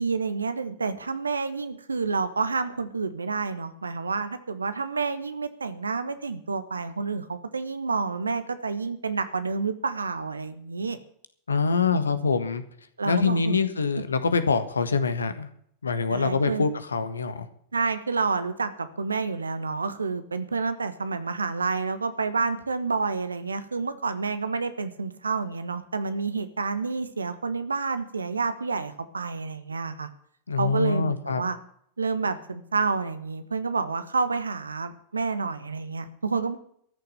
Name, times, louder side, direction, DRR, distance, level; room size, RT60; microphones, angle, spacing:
voice 1, 0.0-11.0 13.0-13.6 14.2-14.4 16.1-16.6 17.7-30.1 30.6-31.6 32.0-36.6, right 4 dB, 75° right, 11 dB, 1.3 m, -29 dB
voice 2, 11.5-12.6 13.0-15.5 15.8-17.5 30.5-31.5, left 4 dB, 75° left, 11 dB, 1.4 m, -25 dB
13.5 x 6.9 x 9.0 m, 0.66 s
figure-of-eight pair, 90°, 0 cm